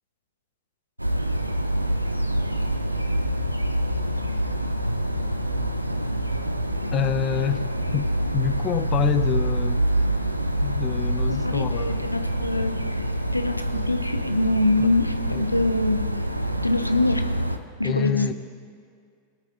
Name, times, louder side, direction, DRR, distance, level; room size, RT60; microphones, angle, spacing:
sound 1, 1.0-17.6, right 1 dB, 85° right, 0.6 m, -26 dB
voice 1, 6.9-7.6 7.9-9.8 10.6-12.1 14.8-14.9 15.3-15.5 17.8-18.3, left 10 dB, 30° left, 11 dB, 0.5 m, -27 dB
voice 2, 11.3-13.1 13.3-16.1 16.6-17.2 17.8-18.3, left 2 dB, 85° left, 8 dB, 0.6 m, -24 dB
22.0 x 8.9 x 2.4 m, 2.2 s
figure-of-eight pair, 90°, 0 cm